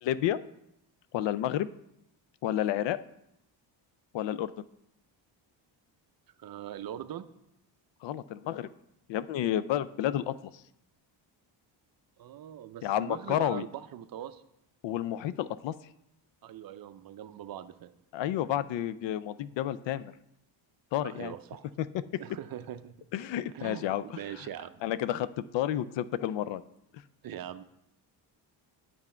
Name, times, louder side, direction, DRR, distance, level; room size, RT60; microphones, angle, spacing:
voice 1, 0.0-0.4 1.1-1.7 2.4-3.0 4.1-4.5 8.0-8.7 9.1-10.4 12.8-13.6 14.8-15.7 18.1-20.1 20.9-21.3 21.8-21.9 23.1-24.2 24.8-26.6, left 12 dB, 65° left, 16 dB, 0.5 m, -30 dB
voice 2, 6.4-7.2 12.2-14.4 16.4-17.9 21.0-21.6 22.2-22.9 23.5-24.7 27.2-27.6, right 10 dB, 50° right, 10 dB, 0.6 m, -41 dB
9.4 x 6.0 x 4.4 m, 0.80 s
cardioid pair, 110°, 47 cm